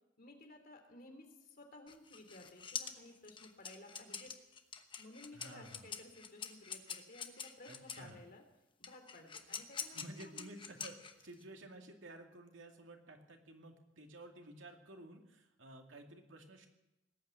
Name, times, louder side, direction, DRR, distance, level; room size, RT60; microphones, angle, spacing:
voice 1, 0.2-4.3 5.0-8.4 8.8-10.6, left 2 dB, 50° left, 4 dB, 2.8 m, -56 dB
sound 1, 1.9-8.1 8.8-11.4, left 7 dB, 25° left, 1.0 m, -46 dB
voice 2, 5.3-5.9 7.7-8.2 9.2-9.3 9.9-11.0 11.2-16.7, right 1 dB, 90° right, 3 dB, 2.4 m, -53 dB
19.5 x 9.0 x 8.2 m, 0.91 s
head